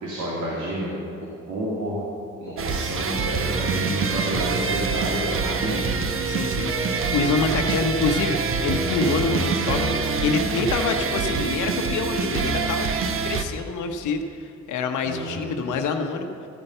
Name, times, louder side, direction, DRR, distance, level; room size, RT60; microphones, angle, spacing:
voice 1, 0.0-0.9 1.5-2.0 2.4-6.0 15.0-15.3, right 1 dB, 80° right, -5 dB, 2.4 m, -29 dB
sound 1, 2.6-13.4, right 5 dB, 45° right, 0.9 m, -25 dB
voice 2, 6.2-6.7 7.1-12.9 13.2-16.3, left 4 dB, 80° left, 5 dB, 0.9 m, -26 dB
sound 2, 6.7-7.2 7.7-8.2 8.7-9.2 9.7-10.2 10.7-11.2, left 1 dB, 15° right, 1.1 m, -34 dB
14.5 x 5.5 x 7.9 m, 2.5 s
cardioid pair, 90°, 30 cm